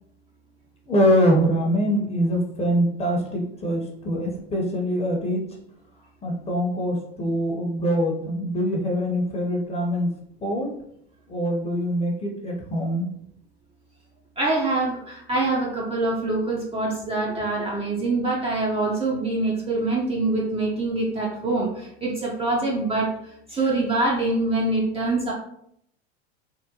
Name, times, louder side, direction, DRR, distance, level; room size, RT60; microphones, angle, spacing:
voice 1, 0.9-5.5 6.2-10.1 10.4-10.7 11.3-13.1, equal, 20° left, 0 dB, 0.7 m, -24 dB
voice 2, 14.4-25.3, right 2 dB, 20° right, -3 dB, 0.5 m, -25 dB
3.6 x 2.1 x 2.8 m, 0.71 s
hypercardioid pair, 100°, 33 cm